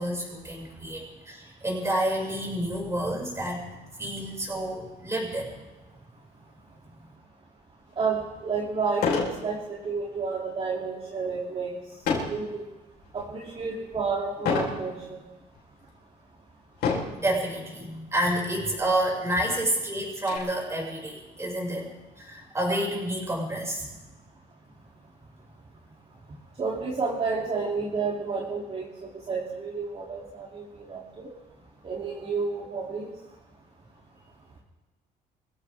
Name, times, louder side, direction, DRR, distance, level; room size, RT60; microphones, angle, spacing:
voice 1, 0.0-3.6 4.0-5.6 17.1-23.8, right 1 dB, 15° right, -2 dB, 6.2 m, -29 dB
sound 1, 8.0-8.1 8.9-9.4 9.8-10.1 12.0-12.4 13.0-13.4 14.4-14.8 15.5-15.6 16.7-17.2 18.2-18.4 18.7-18.8 19.2-20.4, left 5 dB, 75° left, 4.5 m, -27 dB
voice 2, 8.0-11.7 12.1-12.6 13.1-15.2 26.6-30.6 30.9-31.3 31.8-33.1, right 4 dB, 35° right, -4 dB, 3.1 m, -30 dB
25.5 x 15.5 x 3.6 m, 1.1 s
cardioid pair, 110°, 17 cm